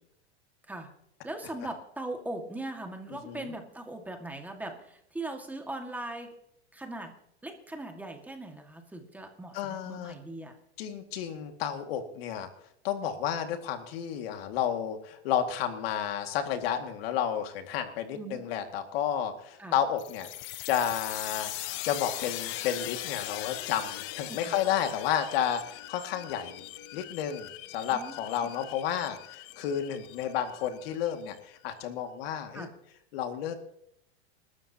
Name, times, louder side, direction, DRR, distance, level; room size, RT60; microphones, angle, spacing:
voice 1, 1.2-6.3 6.7-7.1 7.4-10.5 18.1-18.4 19.6-19.7 24.3-24.5 27.9-28.1 32.5-32.7, right 2 dB, 5° right, 3 dB, 1.9 m, -39 dB
voice 2, 9.5-10.1 10.8-12.5 12.8-20.3 20.6-21.5 21.8-26.6 26.9-32.7 33.1-33.5, left 9 dB, 60° left, 6 dB, 2.1 m, -31 dB
sound 1, 20.0-31.4, left 16 dB, 35° left, 0.7 m, -40 dB
29.0 x 12.5 x 2.9 m, 0.75 s
supercardioid pair, 150°, 33 cm